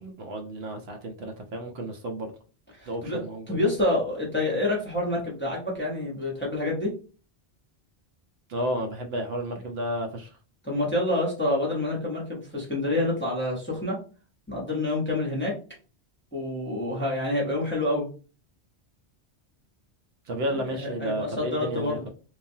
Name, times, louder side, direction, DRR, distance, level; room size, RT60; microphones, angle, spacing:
voice 1, 0.0-2.3 2.9-3.6 8.5-10.3 20.3-22.1, right 1 dB, 70° right, 4 dB, 0.8 m, -32 dB
voice 2, 2.8-3.2 3.5-6.9 10.6-14.0 14.5-15.5 16.3-18.1 20.7-22.1, left 1 dB, 10° left, -4 dB, 0.7 m, -27 dB
3.1 x 2.2 x 2.6 m, 0.37 s
omnidirectional pair, 1.1 m